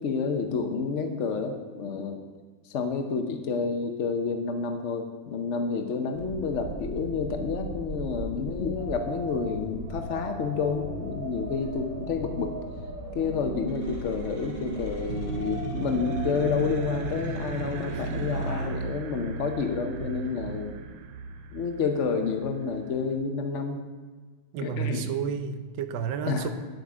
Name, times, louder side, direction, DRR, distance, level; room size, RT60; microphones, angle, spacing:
voice 1, 0.0-2.2 2.7-12.5 13.1-20.8 21.5-23.8 24.6-25.1 26.3-26.5, left 5 dB, 90° left, 5 dB, 0.6 m, -29 dB
sound 1, 6.1-18.7, right 1 dB, 40° right, 2.1 m, -37 dB
sound 2, 15.1-23.2, right 4 dB, 90° right, 1.6 m, -36 dB
voice 2, 24.5-26.5, right 7 dB, 70° right, 9 dB, 1.3 m, -31 dB
9.5 x 7.9 x 4.8 m, 1.4 s
omnidirectional pair, 2.3 m